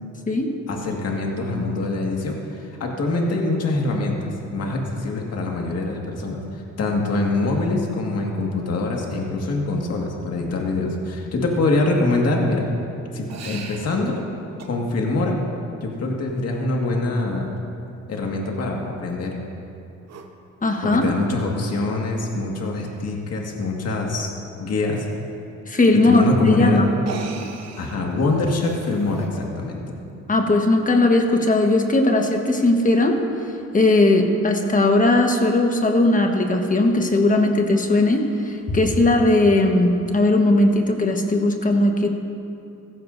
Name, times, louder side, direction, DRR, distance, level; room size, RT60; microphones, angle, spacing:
voice 1, 0.7-12.6 13.1-14.2 14.6-15.4 15.8-17.5 18.1-19.3 20.8-24.3 24.6-25.1 26.0-26.8 27.8-29.8, left 2 dB, 55° left, 0 dB, 1.9 m, -24 dB
sound 1, 13.3-14.0 14.6-14.7 16.8-17.0 20.1-20.3 21.8-21.9 22.3-22.4 22.7-22.8 25.8-25.9 26.9-29.3, right 5 dB, 60° right, 1.1 m, -38 dB
voice 2, 20.6-21.1 25.7-26.9 30.3-33.2 33.7-42.1, left 2 dB, 25° left, 3 dB, 1.3 m, -18 dB
15.5 x 14.5 x 2.7 m, 2.8 s
cardioid pair, 90°, 30 cm